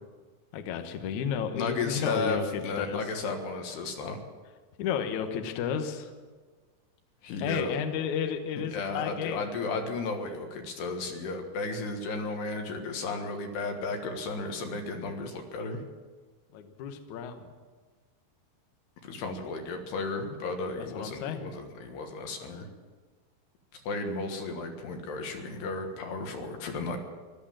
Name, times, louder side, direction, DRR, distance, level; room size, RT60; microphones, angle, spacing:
voice 1, 0.5-3.0 4.8-6.1 7.4-9.5 16.5-17.5 20.8-21.5, left 7 dB, 65° left, 7 dB, 2.0 m, -32 dB
voice 2, 1.6-4.2 7.2-7.7 8.7-15.8 19.0-22.7 23.7-27.0, left 3 dB, 90° left, 4 dB, 3.6 m, -34 dB
14.0 x 12.5 x 7.5 m, 1.4 s
omnidirectional pair, 4.6 m